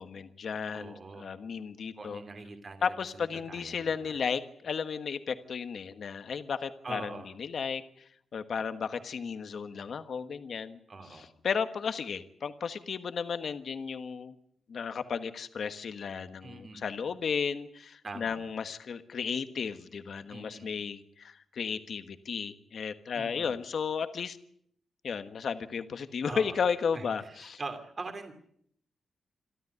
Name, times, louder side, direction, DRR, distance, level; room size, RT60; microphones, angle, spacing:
voice 1, 0.0-2.2 2.8-10.8 11.1-14.4 14.7-24.4 25.0-27.6, left 6 dB, 50° left, 10 dB, 1.4 m, -34 dB
voice 2, 0.7-1.3 2.0-3.9 6.8-7.3 10.9-11.3 16.4-16.8 18.0-18.4 20.3-20.7 23.1-23.5 26.3-26.6 26.9-28.3, right 3 dB, 30° right, 7 dB, 2.8 m, -43 dB
27.5 x 13.0 x 9.4 m, 0.68 s
wide cardioid pair, 170°, 0 cm